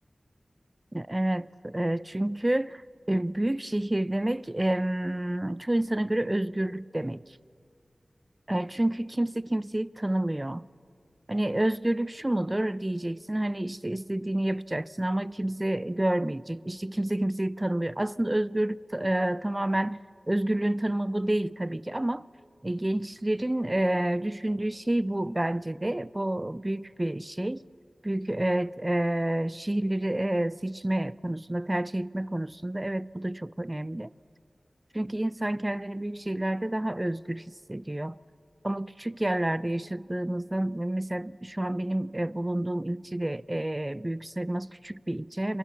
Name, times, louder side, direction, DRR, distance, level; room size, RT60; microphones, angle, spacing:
voice 1, 0.9-2.8 3.1-7.2 8.5-10.7 11.3-20.0 20.3-22.3 22.6-27.6 28.0-34.1 34.9-38.2 38.6-45.6, right 1 dB, 25° right, 0.5 m, -29 dB
27.0 x 23.5 x 7.0 m
wide cardioid pair, 50°, 0 cm